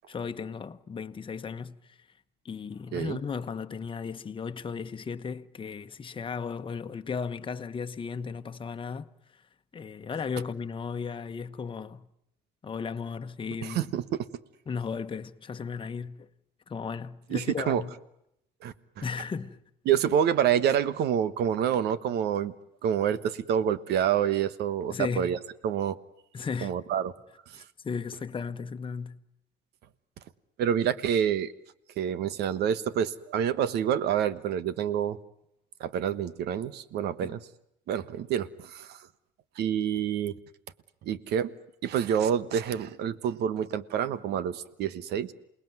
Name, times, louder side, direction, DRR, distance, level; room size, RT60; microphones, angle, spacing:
voice 1, 0.1-1.8 2.4-9.1 9.7-12.1 12.6-13.9 14.7-16.3 16.7-17.9 19.0-19.6 24.9-25.4 26.3-26.8 27.5-29.2 37.2-37.4, left 5 dB, 30° left, 1.2 m, -35 dB
voice 2, 13.6-14.0 17.3-17.8 18.6-18.7 19.8-22.5 22.8-26.0 26.6-27.1 27.5-27.6 30.6-31.5 32.0-35.2 35.8-37.5 37.9-39.0 39.6-40.3 41.0-41.5 41.8-45.3, right 9 dB, 75° right, 1.4 m, -27 dB
28.5 x 20.0 x 9.5 m
cardioid pair, 110°, 17 cm